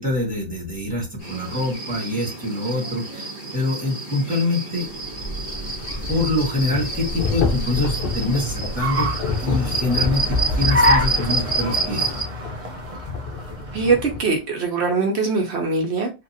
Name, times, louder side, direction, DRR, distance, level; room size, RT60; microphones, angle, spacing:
voice 1, 0.0-4.9 6.1-9.1 9.4-12.2, left 2 dB, 10° right, 1.5 m, -25 dB
sound 1, 1.2-12.2, right 3 dB, 35° left, 1.3 m, -29 dB
Car, 4.8-14.4, equal, 35° right, 0.7 m, -28 dB
sound 2, 6.0-14.2, left 4 dB, 60° left, 0.8 m, -28 dB
voice 2, 13.7-16.1, right 4 dB, 75° right, 1.0 m, -22 dB
2.9 x 2.5 x 2.6 m
omnidirectional pair, 1.1 m